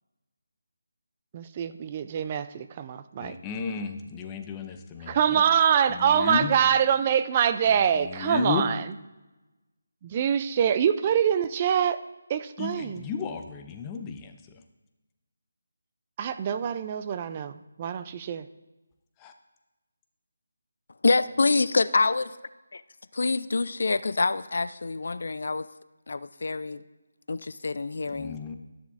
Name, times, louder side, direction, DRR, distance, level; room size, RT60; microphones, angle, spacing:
voice 1, 1.3-3.3 5.1-8.8 10.0-12.0 12.3-13.0 16.2-18.5, right 8 dB, 30° right, 11 dB, 0.4 m, -25 dB
voice 2, 3.2-5.5 5.9-6.6 7.7-8.7 12.6-14.6 19.2-19.3 28.1-28.5, left 6 dB, 15° left, 6 dB, 0.7 m, -34 dB
voice 3, 21.0-22.3 23.1-25.7 26.1-26.8 27.3-28.4, left 3 dB, 65° left, 15 dB, 0.4 m, -26 dB
12.5 x 10.0 x 2.5 m, 1.1 s
figure-of-eight pair, 160°, 0 cm